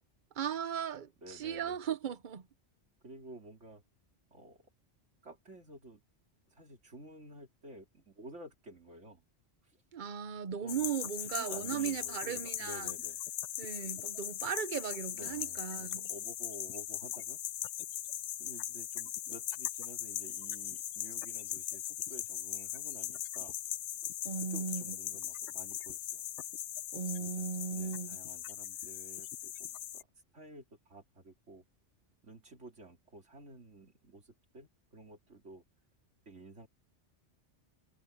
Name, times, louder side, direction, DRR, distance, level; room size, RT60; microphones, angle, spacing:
voice 1, 0.4-2.4 9.9-12.9 13.6-16.1 24.2-24.9 26.9-28.2, right 7 dB, 45° right, 0.9 m, -37 dB
voice 2, 1.2-1.8 3.0-3.8 4.3-4.7 5.2-6.0 6.5-9.2 9.6-9.8 10.6-10.9 11.3-13.2 13.5-13.8 15.1-17.4 18.4-23.6 24.4-26.2 27.2-27.5 27.7-30.1 30.3-31.6 32.2-35.6 36.2-36.7, right 2 dB, 80° right, 3.3 m, -52 dB
sound 1, 10.7-30.0, left 12 dB, 80° left, 0.9 m, -40 dB
omnidirectional pair, 1.2 m